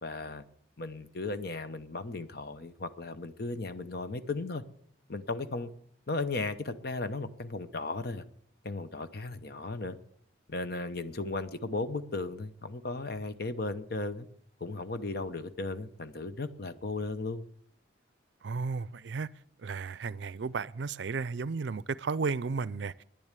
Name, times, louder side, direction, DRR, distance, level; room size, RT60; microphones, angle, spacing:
voice 1, 0.0-0.4 0.8-4.6 5.1-5.7 6.1-8.2 8.6-10.0 10.5-14.3 14.6-17.4, left 3 dB, 55° left, 0.9 m, -36 dB
voice 2, 18.4-19.3 19.6-23.0, right 4 dB, 65° right, 0.4 m, -34 dB
10.5 x 10.5 x 8.2 m
head